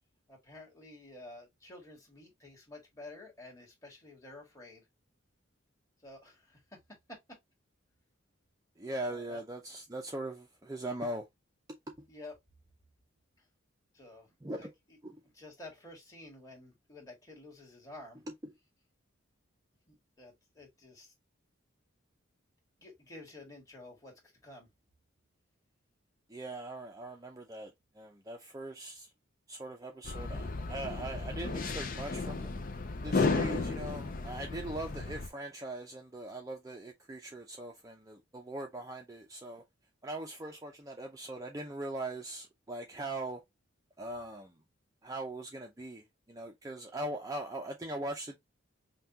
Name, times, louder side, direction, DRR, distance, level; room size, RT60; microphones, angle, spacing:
voice 1, 0.3-4.9 6.0-7.4 9.1-9.4 12.1-12.3 13.9-15.0 15.3-18.2 19.9-21.1 22.8-24.1 24.4-24.7, left 2 dB, 15° left, 1.7 m, -51 dB
voice 2, 8.8-11.3 14.4-14.7 15.0-15.2 26.3-29.1 29.5-32.5 33.0-39.6 40.0-43.4 44.0-44.6 45.0-48.4, right 1 dB, 15° right, 0.5 m, -41 dB
sound 1, 30.0-35.3, left 3 dB, 40° left, 0.6 m, -34 dB
5.6 x 2.3 x 2.8 m
head